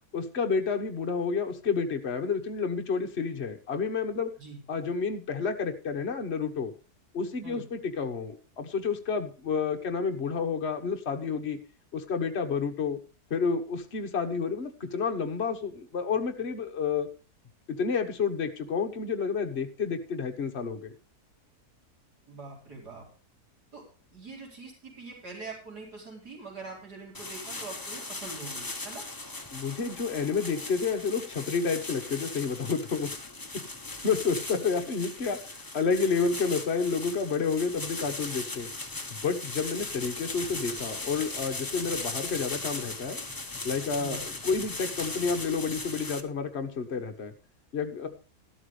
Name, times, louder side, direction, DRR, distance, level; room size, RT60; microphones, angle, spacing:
voice 1, 0.1-4.3 4.7-6.7 7.1-11.6 11.9-13.0 13.3-17.1 17.7-20.9 29.5-33.1 34.0-35.4 35.7-38.7 39.1-43.2 43.6-47.3 47.7-48.1, left 5 dB, 45° left, 4 dB, 1.6 m, -30 dB
voice 2, 22.3-23.0 23.7-23.8 24.1-29.0 44.0-44.2, right 3 dB, 85° right, -1 dB, 5.1 m, -43 dB
sound 1, 27.1-46.2, left 2 dB, 15° left, 0.9 m, -38 dB
13.5 x 12.0 x 3.3 m, 0.34 s
omnidirectional pair, 1.7 m